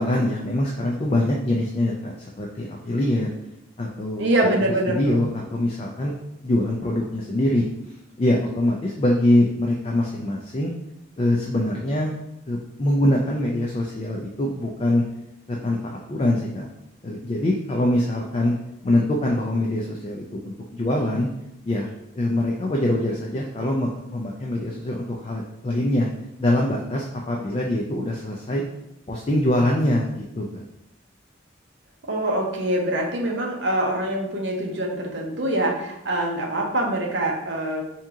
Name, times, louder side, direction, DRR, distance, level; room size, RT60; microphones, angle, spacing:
voice 1, 0.0-2.1 2.4-3.3 3.8-4.2 4.9-6.1 6.4-7.6 8.2-10.7 11.2-12.1 12.5-15.0 15.5-16.7 17.0-18.5 18.8-21.3 21.6-26.1 26.4-28.6 29.1-30.6, left 1 dB, 30° left, -1 dB, 0.4 m, -23 dB
voice 2, 4.2-5.2 32.1-37.8, right 1 dB, 60° right, 0 dB, 0.7 m, -24 dB
3.6 x 2.8 x 3.6 m, 0.85 s
head